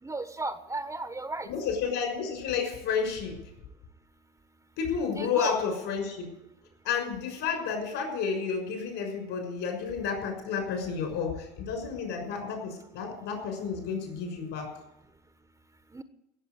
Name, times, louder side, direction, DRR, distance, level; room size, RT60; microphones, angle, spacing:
voice 1, 0.0-1.5 5.1-5.5 15.9-16.0, right 2 dB, 15° right, 10 dB, 1.2 m, -34 dB
voice 2, 1.5-3.3 4.8-6.3 6.8-14.7, left 6 dB, 60° left, 3 dB, 6.2 m, -31 dB
16.5 x 7.4 x 9.5 m, 0.85 s
hypercardioid pair, 70°, 21 cm